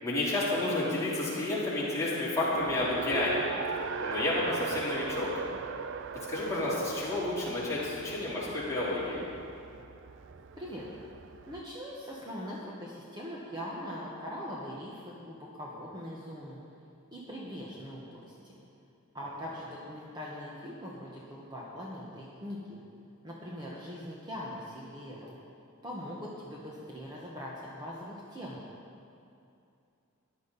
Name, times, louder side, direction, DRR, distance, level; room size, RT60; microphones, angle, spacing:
voice 1, 0.0-3.4 4.0-5.3 6.3-9.2, left 2 dB, 15° left, -9 dB, 3.6 m, -30 dB
Race car auto racing, 2.5-11.6, right 5 dB, 60° right, 0.5 m, -39 dB
voice 2, 11.5-16.6 17.1-18.6 19.1-22.8 23.2-25.4 25.8-28.6, equal, 20° right, -5 dB, 1.3 m, -41 dB
15.5 x 11.0 x 4.1 m, 2.6 s
head